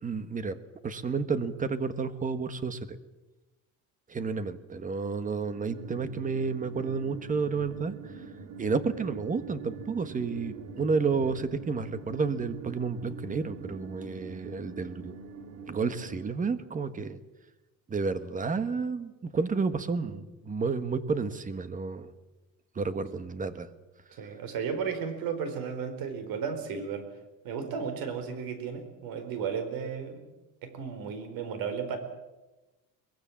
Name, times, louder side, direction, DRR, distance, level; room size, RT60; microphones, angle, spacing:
voice 1, 0.0-0.6 0.8-3.0 4.1-8.1 8.6-15.2 15.7-17.2 17.9-22.1 22.7-23.7, right 4 dB, 25° right, 12 dB, 1.4 m, -31 dB
sound 1, 5.4-16.4, right 5 dB, 45° right, 2.7 m, -44 dB
voice 2, 24.2-27.0 27.4-30.2 30.6-32.0, right 6 dB, 80° right, 8 dB, 5.0 m, -34 dB
23.0 x 21.5 x 7.5 m, 1.1 s
cardioid pair, 170°, 35 cm